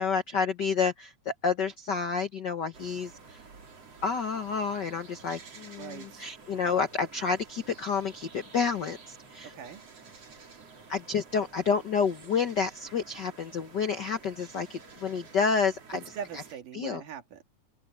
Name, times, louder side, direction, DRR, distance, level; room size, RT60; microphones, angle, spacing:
voice 1, 0.0-3.4 4.0-9.5 10.9-16.0 16.3-16.4 16.7-17.0, left 5 dB, 85° left, 0.9 m, -29 dB
sound 1, 2.7-16.6, right 4 dB, 50° right, 4.5 m, -51 dB
voice 2, 5.8-6.3 9.5-9.8 16.2-17.4, right 8 dB, 75° right, 3.6 m, -41 dB
open air
omnidirectional pair, 3.8 m